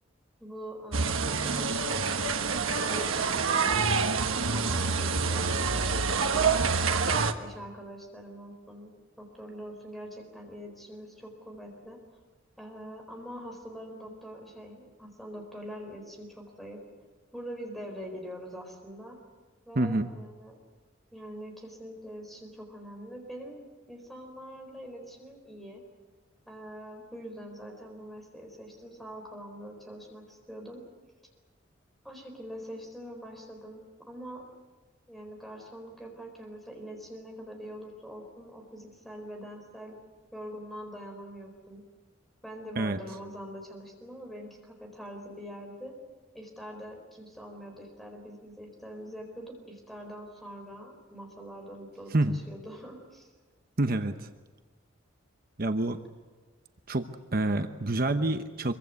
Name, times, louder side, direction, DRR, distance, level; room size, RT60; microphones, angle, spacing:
voice 1, 0.4-2.2 2.7-6.9 7.3-12.0 12.6-16.8 17.3-19.2 19.7-20.6 21.1-23.6 23.9-25.8 26.5-30.8 32.0-34.5 35.1-40.0 40.3-41.8 42.4-45.9 46.3-53.3, equal, ahead, 2 dB, 4.2 m, -44 dB
sound 1, 0.9-7.3, right 4 dB, 85° right, 1.4 m, -27 dB
voice 2, 19.8-20.1 42.8-43.0 52.1-52.3 53.8-54.3 55.6-56.0 56.9-58.7, right 2 dB, 45° right, 8 dB, 0.9 m, -27 dB
25.0 x 23.0 x 8.2 m, 1.3 s
head